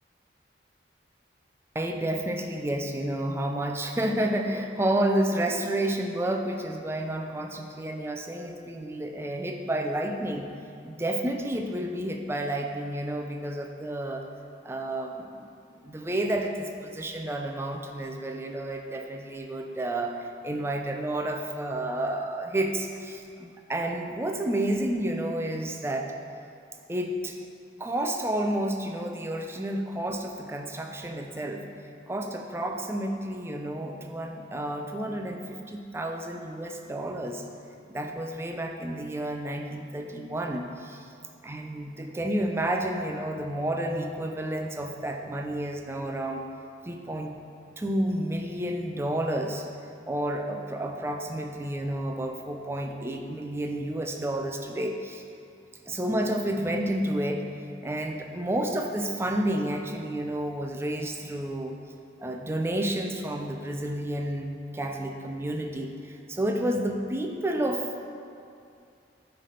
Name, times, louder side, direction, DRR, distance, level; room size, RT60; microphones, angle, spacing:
voice 1, 1.7-10.5 10.8-14.2 14.6-15.5 15.8-20.2 20.4-26.1 26.9-27.4 27.8-31.6 32.1-37.4 37.9-41.1 41.4-46.5 46.8-47.3 47.8-49.7 50.1-55.2 55.9-57.4 57.8-61.8 62.2-67.9, right 1 dB, 15° right, 3 dB, 0.4 m, -30 dB
9.6 x 3.3 x 3.8 m, 2.5 s
head